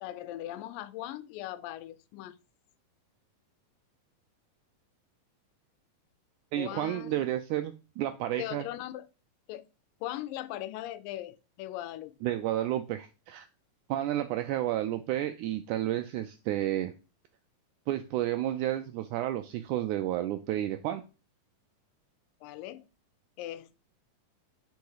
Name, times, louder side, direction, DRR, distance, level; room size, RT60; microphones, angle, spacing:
voice 1, 0.0-2.4 6.6-7.3 8.4-9.1 9.5-9.6 10.0-12.1 22.4-22.8 23.4-23.8, left 14 dB, 85° left, 2.3 m, -39 dB
voice 2, 6.5-8.6 12.2-13.5 13.9-16.9 17.9-21.0, right 13 dB, 85° right, 1.8 m, -31 dB
5.3 x 4.7 x 4.6 m
omnidirectional pair, 4.0 m